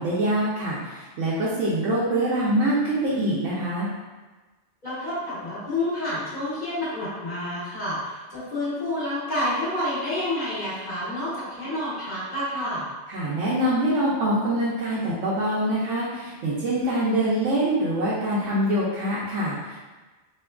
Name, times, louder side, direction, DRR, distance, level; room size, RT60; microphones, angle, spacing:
voice 1, 0.0-3.9 13.1-19.8, right 1 dB, 90° right, -7 dB, 1.0 m, -24 dB
voice 2, 4.8-12.9, left 1 dB, 45° left, -13 dB, 1.1 m, -29 dB
3.5 x 2.9 x 2.2 m, 1.2 s
omnidirectional pair, 1.2 m